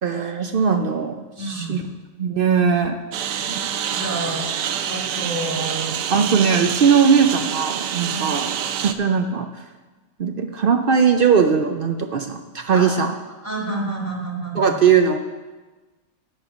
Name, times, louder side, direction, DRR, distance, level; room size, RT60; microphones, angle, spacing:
voice 1, 0.0-1.8 2.2-3.0 6.1-8.5 8.8-9.5 10.2-13.1 14.6-15.2, right 6 dB, 60° right, 6 dB, 0.6 m, -19 dB
voice 2, 1.4-1.8 3.5-6.4 8.1-8.3 12.7-13.1 13.4-14.8, right 2 dB, 10° right, -3 dB, 1.8 m, -30 dB
Engine, 3.1-8.9, right 9 dB, 80° right, 1.0 m, -27 dB
11.0 x 4.4 x 7.9 m, 1.3 s
omnidirectional pair, 1.4 m